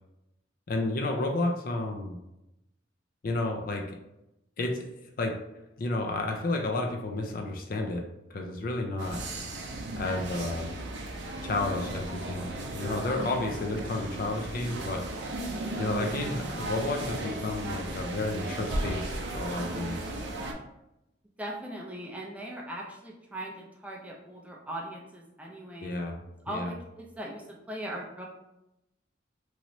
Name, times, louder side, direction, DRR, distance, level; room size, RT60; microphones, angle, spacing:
voice 1, 0.7-2.2 3.2-4.0 4.6-4.9 5.2-5.4 5.8-9.2 10.0-10.7 11.4-12.5 12.7-15.1 15.8-20.1 25.8-26.2 26.5-26.7, left 2 dB, 50° left, 3 dB, 0.4 m, -31 dB
sound 1, 9.0-20.5, right 1 dB, 65° right, 0.5 m, -35 dB
voice 2, 21.4-25.9 26.5-28.3, right 1 dB, 5° right, -2 dB, 0.4 m, -39 dB
3.1 x 2.9 x 2.6 m, 0.89 s
head